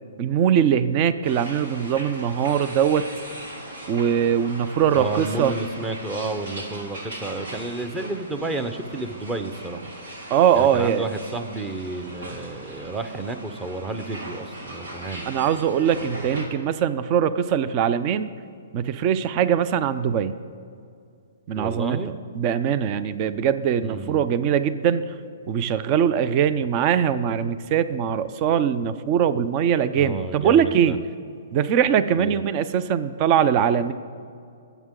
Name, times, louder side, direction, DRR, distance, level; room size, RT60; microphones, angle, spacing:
voice 1, 0.2-3.1 3.9-5.5 10.3-11.1 15.3-18.3 18.7-20.4 21.5-22.0 22.3-25.1 25.5-31.0 31.5-33.9, right 8 dB, 35° right, 13 dB, 0.5 m, -21 dB
sound 1, 1.2-16.5, right 1 dB, 85° right, 2.5 m, -38 dB
voice 2, 5.0-9.8 10.5-15.3 21.5-22.1 23.8-24.2 30.0-31.0 32.2-32.4, right 2 dB, 15° right, 9 dB, 0.9 m, -31 dB
23.0 x 8.1 x 3.8 m, 2.4 s
hypercardioid pair, 145°, 0 cm